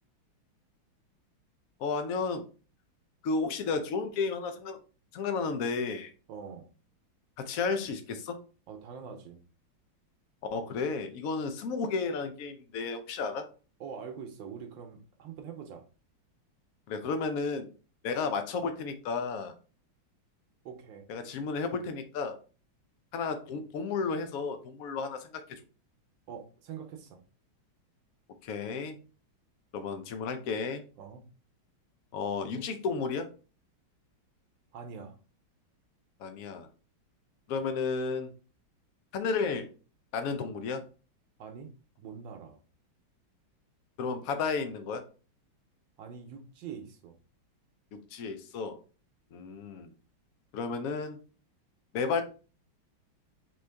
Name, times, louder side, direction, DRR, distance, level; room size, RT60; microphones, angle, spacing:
voice 1, 1.8-2.5 3.2-4.8 5.1-6.1 7.4-8.4 10.5-13.5 16.9-17.7 18.0-19.5 21.1-22.4 23.1-25.6 28.4-29.0 29.7-30.8 32.1-33.3 36.2-36.7 37.5-38.3 39.1-39.7 40.1-40.8 44.0-45.0 47.9-48.8 49.3-49.9 50.5-51.2 51.9-52.2, left 4 dB, 80° left, 7 dB, 0.7 m, -32 dB
voice 2, 6.3-6.7 8.7-9.4 13.8-15.8 20.6-21.0 26.3-27.2 31.0-31.3 34.7-35.2 41.4-41.7 42.0-42.6 46.0-47.2, right 7 dB, 75° right, 6 dB, 1.3 m, -44 dB
4.4 x 3.1 x 3.3 m, 0.36 s
omnidirectional pair, 2.3 m